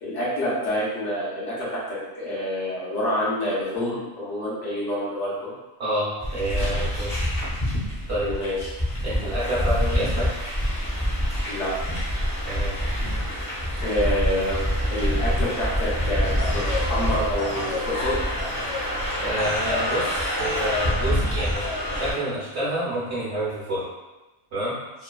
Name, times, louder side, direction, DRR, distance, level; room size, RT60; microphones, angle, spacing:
voice 1, 0.0-5.5 8.2-8.7 11.5-11.7 13.8-14.6 14.9-18.2, left 1 dB, 65° left, -7 dB, 1.1 m, -27 dB
voice 2, 5.8-7.1 8.1-8.4 9.0-10.3 12.4-12.7 19.2-21.6 21.9-23.8 24.5-24.7, right 1 dB, 55° right, -9 dB, 0.9 m, -28 dB
sound 1, 6.2-22.1, equal, 20° left, 0.7 m, -26 dB
sound 2, 16.4-20.1 20.4-21.1 21.4-22.1, left 2 dB, 90° left, 1.2 m, -32 dB
3.0 x 2.1 x 2.3 m, 1.1 s
omnidirectional pair, 1.4 m